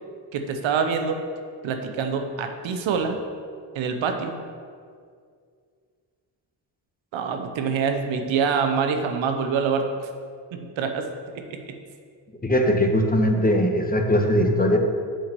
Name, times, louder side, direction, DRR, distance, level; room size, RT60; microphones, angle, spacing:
voice 1, 0.3-1.2 1.6-3.2 3.7-4.4 7.1-9.9 10.5-11.1 11.3-11.6, right 6 dB, 85° right, 6 dB, 0.9 m, -25 dB
voice 2, 12.4-14.8, equal, 20° left, 3 dB, 1.3 m, -20 dB
7.2 x 5.8 x 6.8 m, 2.1 s
supercardioid pair, 55°, 45 cm